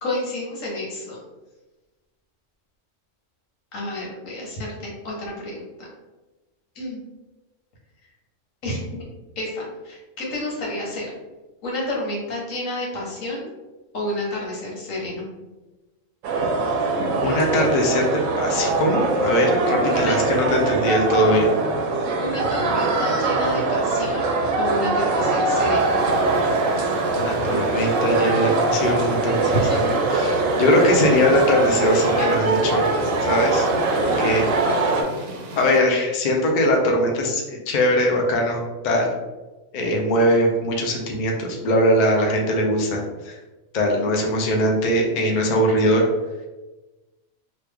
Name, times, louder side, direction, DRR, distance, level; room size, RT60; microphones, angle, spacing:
voice 1, 0.0-1.2 3.7-5.9 6.7-7.0 8.6-9.1 9.4-11.1 11.6-13.5 13.9-15.2 19.9-20.2 22.2-24.3 24.6-25.9 29.5-29.9 32.2-32.4, left 1 dB, 80° left, -4 dB, 1.4 m, -30 dB
sound 1, 16.2-35.0, right 3 dB, 90° right, 1.0 m, -22 dB
voice 2, 17.2-21.5 27.1-29.6 30.1-32.9 33.2-33.7 34.0-34.5 35.6-39.1 39.7-43.3 43.7-46.1, equal, 50° left, 0 dB, 0.6 m, -21 dB
sound 2, 25.7-35.8, right 1 dB, 60° right, 0.7 m, -38 dB
3.1 x 2.4 x 3.3 m, 1.1 s
omnidirectional pair, 1.3 m